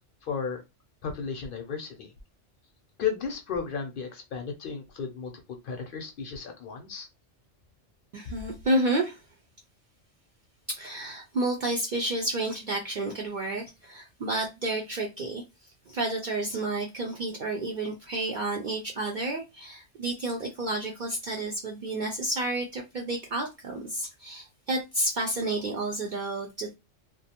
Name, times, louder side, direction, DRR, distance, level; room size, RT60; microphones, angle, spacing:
voice 1, 0.2-0.6 1.0-2.1 3.0-5.3 5.6-7.1, left 6 dB, 60° left, 0.6 m, -34 dB
voice 2, 8.1-9.2 10.7-15.4 15.9-26.7, right 2 dB, 60° right, 0.5 m, -30 dB
2.4 x 2.1 x 2.8 m
omnidirectional pair, 1.2 m